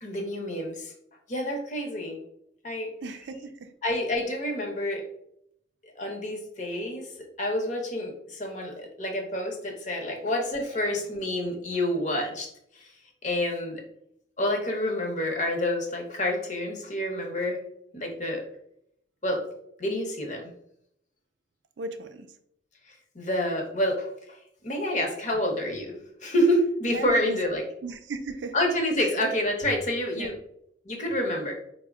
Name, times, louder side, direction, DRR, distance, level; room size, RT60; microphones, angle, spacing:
voice 1, 0.0-0.9 1.3-2.2 2.6-2.9 3.8-5.0 5.8-7.1 7.4-12.5 12.7-12.9 13.2-13.8 14.4-17.6 17.9-18.4 19.2-19.4 19.8-20.4 23.1-24.4 24.6-27.6 28.5-30.4 30.8-31.6, left 1 dB, 40° left, 1 dB, 0.8 m, -28 dB
voice 2, 3.0-3.7 11.5-11.6 21.8-22.3 26.9-27.4 27.8-28.5 29.0-29.1 30.2-30.3, right 3 dB, 75° right, 8 dB, 0.4 m, -36 dB
4.2 x 2.1 x 3.5 m, 0.73 s
head